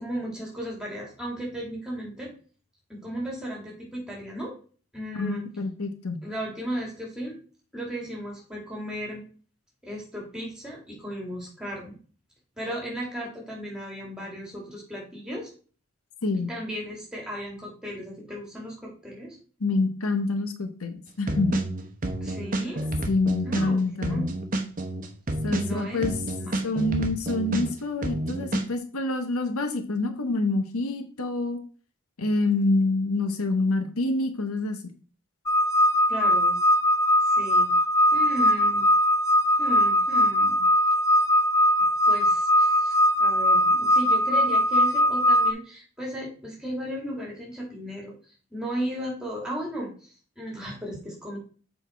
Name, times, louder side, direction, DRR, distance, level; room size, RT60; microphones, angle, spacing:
voice 1, 0.0-2.3 2.9-4.5 4.9-5.4 6.2-7.4 7.7-9.2 9.8-12.0 12.6-15.5 16.3-19.4 22.2-22.9 23.4-24.2 25.6-26.0 26.3-26.5 36.1-36.6 37.2-38.9 39.6-40.6 42.1-48.1 48.5-51.4, equal, 5° right, -3 dB, 2.5 m, -35 dB
voice 2, 5.2-6.2 16.2-16.5 19.6-21.6 23.1-24.3 25.4-26.2 26.6-31.6 32.2-34.8, left 2 dB, 80° left, 6 dB, 0.9 m, -26 dB
sound 1, 21.3-23.7 24.0-27.7 28.0-28.6, right 1 dB, 35° right, 0.8 m, -29 dB
sound 2, 35.5-45.5, left 1 dB, 15° left, 0.4 m, -21 dB
7.0 x 4.2 x 4.5 m, 0.40 s
head